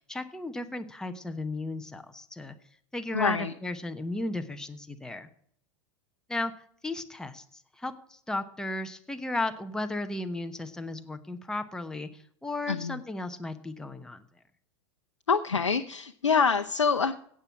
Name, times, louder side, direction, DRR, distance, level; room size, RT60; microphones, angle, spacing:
voice 1, 0.0-2.6 2.9-5.3 6.3-6.5 6.8-14.2, left 2 dB, 5° left, 7 dB, 1.0 m, -35 dB
voice 2, 3.1-3.5 12.7-13.0 15.3-17.1, left 5 dB, 80° left, 6 dB, 0.7 m, -25 dB
17.0 x 6.4 x 7.1 m, 0.64 s
figure-of-eight pair, 90°, 15 cm